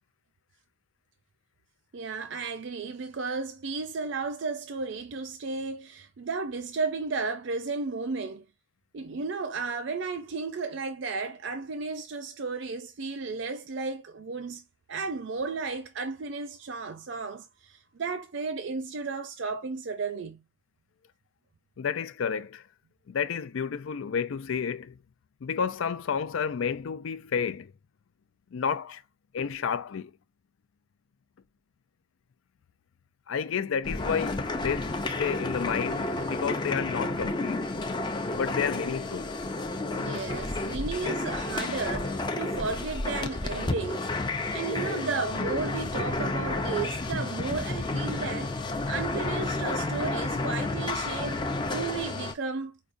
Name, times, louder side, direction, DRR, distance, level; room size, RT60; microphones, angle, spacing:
voice 1, 1.9-8.5 8.9-14.6 14.9-20.4 39.9-44.1 44.5-48.6 48.9-52.8, right 4 dB, 65° right, 0.5 m, -34 dB
voice 2, 21.8-22.6 23.1-25.0 25.4-27.7 28.5-29.0 29.3-30.1 33.3-37.7 38.3-39.3, left 7 dB, 85° left, 0.4 m, -31 dB
sound 1, 33.8-52.3, left 2 dB, 25° left, 0.4 m, -31 dB
4.9 x 2.2 x 2.5 m
head